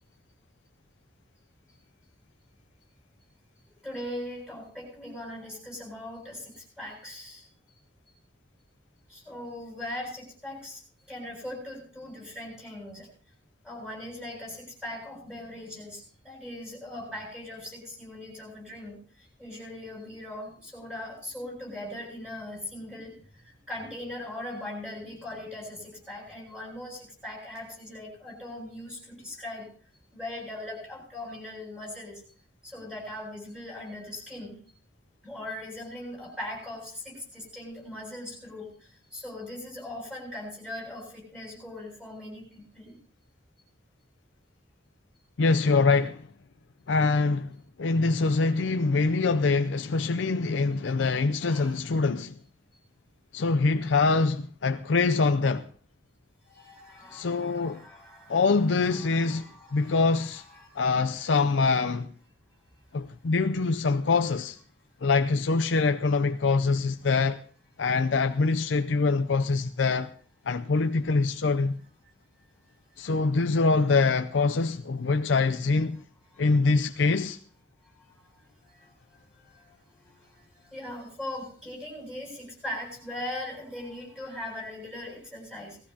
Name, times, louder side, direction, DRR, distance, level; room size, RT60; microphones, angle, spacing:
voice 1, 3.8-7.5 9.1-10.8 11.1-13.1 13.6-19.0 19.4-29.7 30.1-32.2 32.6-34.5 35.2-42.9 51.4-51.7 56.4-58.4 58.8-61.4 76.3-76.4 78.1-79.8 80.0-85.8, left 1 dB, 5° right, 7.9 m, -40 dB
voice 2, 45.4-46.2 46.9-47.5 47.8-52.3 53.3-55.7 57.1-57.8 58.3-59.4 59.7-60.4 60.8-62.1 62.9-64.6 65.0-67.4 67.8-70.1 70.5-71.8 73.0-76.0 76.4-77.4, left 4 dB, 85° left, 0.5 m, -24 dB
19.0 x 15.0 x 2.9 m
head